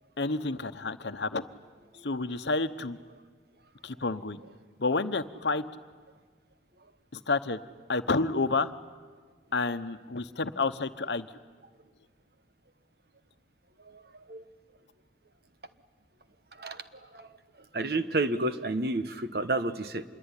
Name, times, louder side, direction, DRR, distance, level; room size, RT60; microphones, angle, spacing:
voice 1, 0.2-1.5 2.0-3.0 3.8-4.4 4.8-5.6 7.1-7.6 7.9-8.7 9.5-11.3, left 3 dB, 75° left, 11 dB, 1.0 m, -29 dB
voice 2, 17.7-20.0, right 2 dB, 55° right, 11 dB, 1.2 m, -30 dB
26.5 x 22.0 x 9.9 m, 1.5 s
head